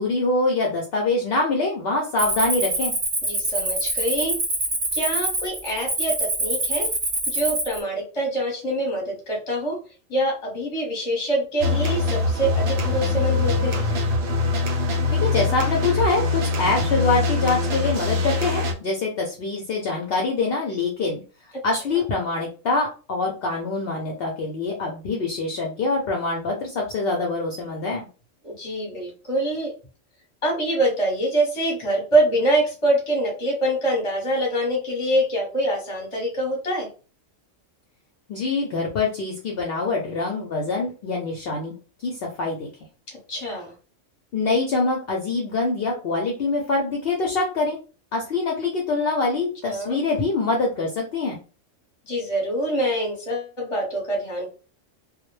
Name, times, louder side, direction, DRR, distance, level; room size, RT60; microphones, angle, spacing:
voice 1, 0.0-2.9 15.1-21.2 21.6-28.1 38.3-41.7 42.0-42.7 44.3-47.8 48.1-51.4, left 3 dB, 65° left, 0 dB, 0.6 m, -24 dB
Cricket, 2.2-7.8, right 2 dB, 35° right, 0.7 m, -25 dB
voice 2, 3.2-4.4 4.9-6.9 7.3-9.8 10.1-13.9 21.7-21.8 28.4-29.7 30.4-36.9 43.1-43.7 49.7-50.0 52.1-54.5, right 1 dB, 30° left, -1 dB, 0.8 m, -25 dB
sound 1, 11.6-18.7, left 3 dB, 65° right, 0.8 m, -23 dB
2.2 x 2.0 x 3.0 m, 0.35 s
omnidirectional pair, 1.3 m